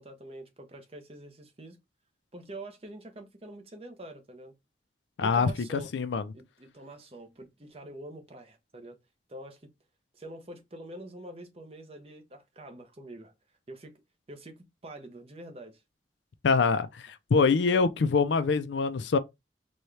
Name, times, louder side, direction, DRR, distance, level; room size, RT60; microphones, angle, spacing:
voice 1, 0.0-1.8 2.3-4.5 5.2-5.9 6.3-9.0 9.3-9.7 10.1-13.3 13.7-14.0 14.3-15.8, right 1 dB, 35° right, 0.7 m, -46 dB
voice 2, 5.2-6.3 16.4-19.2, left 4 dB, 90° left, 0.4 m, -25 dB
4.1 x 2.3 x 3.2 m
head